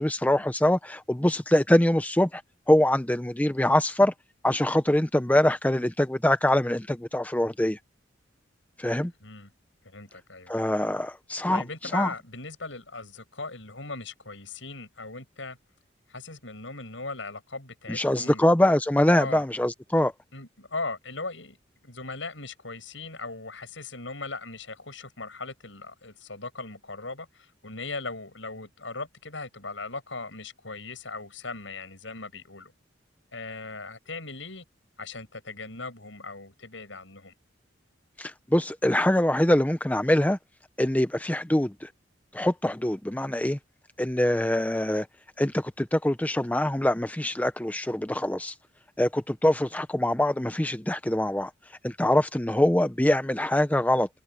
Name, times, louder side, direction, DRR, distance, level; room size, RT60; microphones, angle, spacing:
voice 1, 0.0-2.4 2.7-4.1 4.4-7.8 8.8-9.1 10.5-11.6 11.9-12.1 17.9-20.1 38.2-40.4 40.8-41.9 42.3-43.6 44.0-45.1 45.4-48.5 49.0-51.5 51.8-54.2, left 1 dB, 10° left, 0.6 m, -24 dB
voice 2, 9.0-9.5 9.8-10.5 11.5-15.6 16.1-18.4 19.2-19.4 20.3-21.6 21.8-32.7 33.3-34.6 35.0-37.3, left 3 dB, 75° left, 7.7 m, -38 dB
head